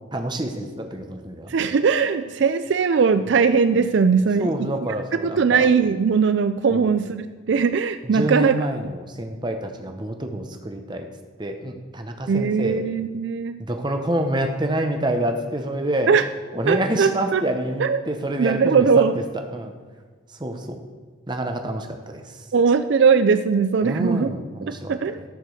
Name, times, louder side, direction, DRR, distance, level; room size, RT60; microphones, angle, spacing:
voice 1, 0.1-1.5 4.4-5.7 6.7-6.9 8.1-11.1 11.4-12.8 13.6-16.1 16.5-19.2 19.5-19.7 20.4-20.8 21.3-22.4 23.8-25.2, right 1 dB, 20° right, 5 dB, 0.9 m, -27 dB
voice 2, 1.5-4.7 5.1-8.6 12.3-13.6 16.1-16.2 16.7-17.4 17.8-18.0 18.4-19.2 22.5-24.3 24.7-25.2, right 5 dB, 60° right, 10 dB, 0.4 m, -20 dB
13.0 x 5.2 x 6.4 m, 1.5 s
head